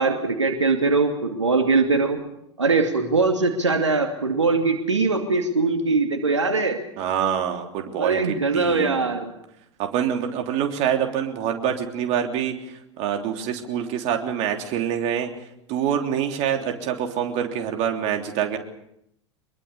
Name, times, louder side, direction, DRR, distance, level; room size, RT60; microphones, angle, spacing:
voice 1, 0.0-2.2 2.6-6.8 8.0-9.3, right 3 dB, 85° right, 4 dB, 2.6 m, -21 dB
voice 2, 7.0-9.1 9.8-15.3 15.7-18.6, right 9 dB, 45° right, 3 dB, 3.4 m, -26 dB
24.0 x 22.5 x 7.1 m, 0.78 s
figure-of-eight pair, 85°, 15 cm